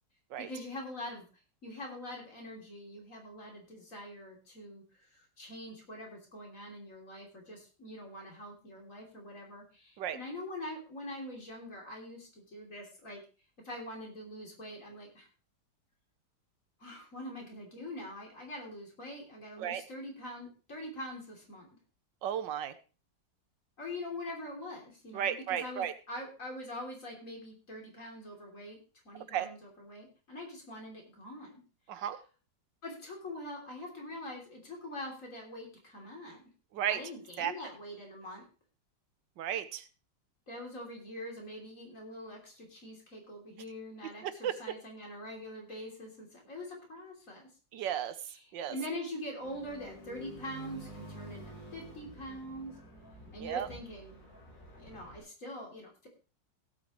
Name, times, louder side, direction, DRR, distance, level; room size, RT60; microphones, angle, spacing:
voice 1, 0.4-1.3 1.6-5.1 5.4-13.2 13.6-15.3 16.8-21.7 23.8-28.8 29.1-31.6 31.9-32.0 32.8-36.4 36.9-38.4 40.5-47.5 48.7-52.7 53.3-54.2 54.7-56.1, left 1 dB, 45° left, 0 dB, 3.6 m, -44 dB
voice 2, 22.2-22.7 25.1-25.9 29.3-29.5 31.9-32.2 36.7-37.0 37.4-37.5 39.4-39.8 44.2-44.6 47.7-48.1 48.5-48.7 53.4-53.7, right 10 dB, 85° right, 13 dB, 1.5 m, -34 dB
sound 1, 49.4-55.2, right 2 dB, 25° left, 7.1 m, -50 dB
17.0 x 8.6 x 3.1 m, 0.35 s
omnidirectional pair, 1.9 m